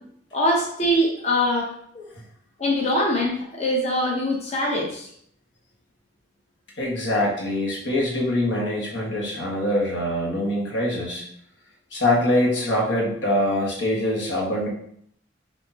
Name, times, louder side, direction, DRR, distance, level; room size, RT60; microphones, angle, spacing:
voice 1, 0.3-1.7 2.6-5.1, left 1 dB, 35° left, -2 dB, 0.8 m, -23 dB
voice 2, 6.8-11.2 11.9-14.7, left 1 dB, 90° left, -3 dB, 1.4 m, -24 dB
6.0 x 2.8 x 2.8 m, 0.67 s
head